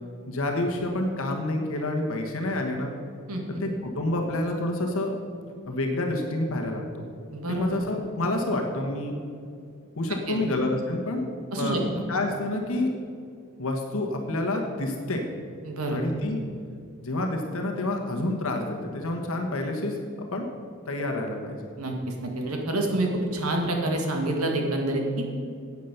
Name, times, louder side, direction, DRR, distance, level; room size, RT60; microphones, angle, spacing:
voice 1, 0.3-2.9 3.5-5.2 5.7-7.1 7.5-9.2 10.0-11.3 11.5-12.9 13.6-15.2 15.9-16.4 17.0-20.0 20.3-20.5 20.9-21.7, left 2 dB, 70° left, 2 dB, 1.3 m, -28 dB
voice 2, 3.3-3.6 7.3-7.7 10.3-10.4 11.5-11.8 15.6-16.0 21.8-25.3, right 1 dB, 90° right, 2 dB, 1.9 m, -27 dB
10.0 x 8.4 x 6.6 m, 2.4 s
head